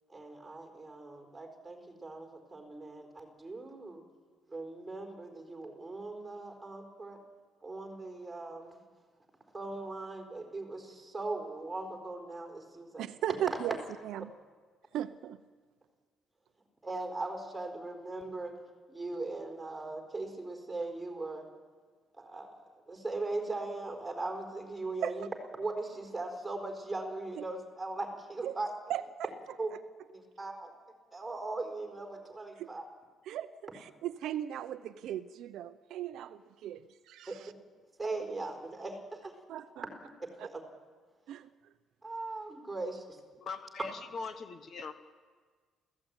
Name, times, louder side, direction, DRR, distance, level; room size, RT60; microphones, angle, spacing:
voice 1, 0.1-4.0 4.5-7.2 7.6-8.8 9.5-13.1 16.8-18.5 18.9-21.4 22.1-25.3 25.6-28.7 29.6-29.7 30.1-30.7 31.1-32.8 37.3-37.4 38.0-39.3 39.8-40.1 40.4-40.6 42.0-43.2, right 2 dB, 10° right, 3 dB, 4.3 m, -39 dB
voice 2, 13.0-13.8 14.0-14.3 14.9-15.4 25.0-25.1 27.4-27.5 28.4-28.6 28.9-29.3 32.6-32.7 33.3-33.5 33.8-37.5 39.5-39.8 40.4-40.5 41.3-41.5, right 11 dB, 65° right, 11 dB, 0.8 m, -37 dB
voice 3, 43.4-44.9, left 4 dB, 40° left, 9 dB, 1.3 m, -41 dB
29.5 x 15.5 x 9.0 m, 1.5 s
cardioid pair, 165°, 0 cm